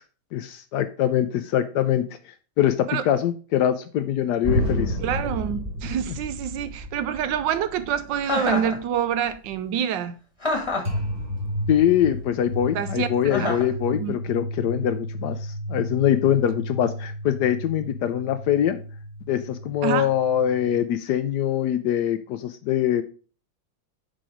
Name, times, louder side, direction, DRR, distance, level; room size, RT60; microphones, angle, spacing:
voice 1, 0.3-5.0 6.1-6.2 11.7-18.8 19.3-23.0, left 10 dB, 70° left, 1.0 m, -23 dB
sound 1, 4.4-9.5 10.8-20.8, equal, 30° right, 1.9 m, -32 dB
voice 2, 5.0-10.1 12.7-13.1 13.4-13.5 13.9-14.2 19.8-20.1, right 9 dB, 75° right, 1.3 m, -26 dB
Chuckle chortle, 8.2-8.8 10.4-11.0 13.3-13.7, left 2 dB, 15° left, 1.2 m, -26 dB
5.9 x 5.0 x 4.9 m
omnidirectional pair, 2.1 m